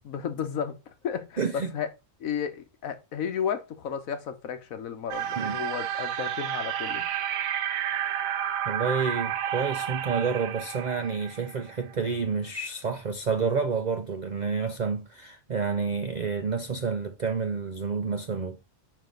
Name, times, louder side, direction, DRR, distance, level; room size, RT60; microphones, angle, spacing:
voice 1, 0.0-1.9 2.2-7.1, left 8 dB, 90° left, 1.4 m, -33 dB
voice 2, 1.4-1.7 5.4-5.6 8.7-18.6, right 5 dB, 50° right, 0.5 m, -29 dB
sound 1, 5.1-11.9, right 10 dB, 85° right, 1.1 m, -31 dB
5.5 x 5.1 x 3.8 m
omnidirectional pair, 1.4 m